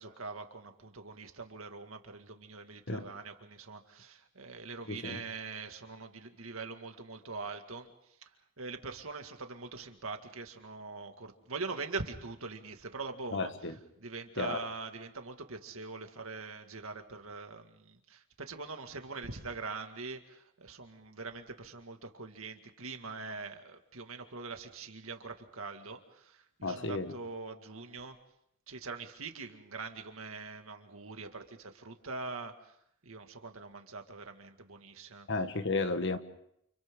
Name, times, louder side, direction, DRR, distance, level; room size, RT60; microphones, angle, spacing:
voice 1, 0.0-7.9 8.6-13.5 14.0-28.2 28.7-32.7 33.0-35.3, right 4 dB, 70° right, 5 dB, 2.1 m, -43 dB
voice 2, 4.9-5.2 13.3-13.7 14.4-14.6 26.6-27.1 35.3-36.2, left 3 dB, 55° left, 9 dB, 1.4 m, -33 dB
30.0 x 29.0 x 3.8 m, 0.73 s
head